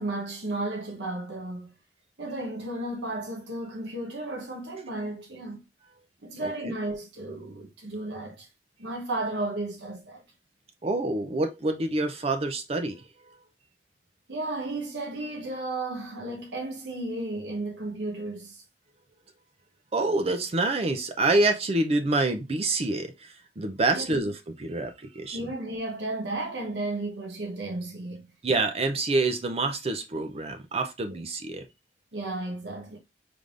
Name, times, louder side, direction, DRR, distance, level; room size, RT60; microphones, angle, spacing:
voice 1, 0.0-1.7 2.2-5.6 6.2-8.5 8.8-10.2 14.3-18.6 23.9-24.3 25.3-28.3 31.1-31.2 32.1-33.0, right 2 dB, 80° right, 1.0 m, -34 dB
voice 2, 6.4-6.7 10.8-13.1 19.9-25.4 28.4-31.7, right 2 dB, 35° right, 0.5 m, -27 dB
5.0 x 3.4 x 2.5 m
head